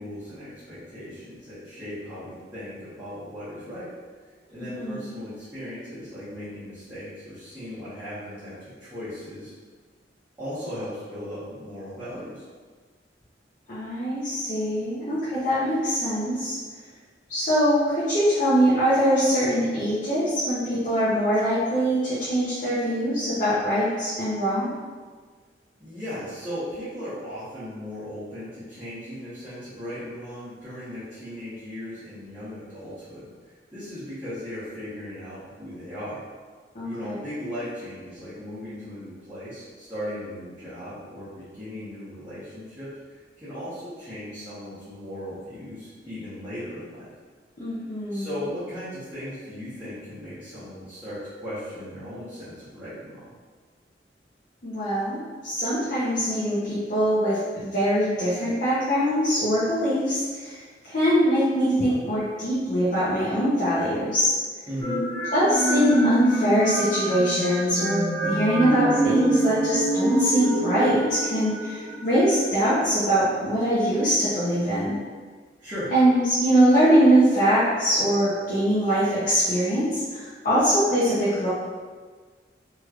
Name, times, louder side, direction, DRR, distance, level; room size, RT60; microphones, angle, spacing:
voice 1, 0.0-3.9 4.5-9.5 10.4-12.4 25.8-36.2 36.8-47.1 48.1-53.2 64.7-65.0 75.6-75.9, equal, 10° right, -16 dB, 1.1 m, -37 dB
voice 2, 4.7-5.2 13.7-16.5 17.3-24.7 36.7-37.2 47.6-48.3 54.6-55.2 55.4-64.3 65.3-74.9 75.9-81.5, equal, 50° left, -11 dB, 0.7 m, -22 dB
sound 1, 64.8-72.5, right 1 dB, 15° left, 0.7 m, -26 dB
3.1 x 3.0 x 2.4 m, 1.5 s
head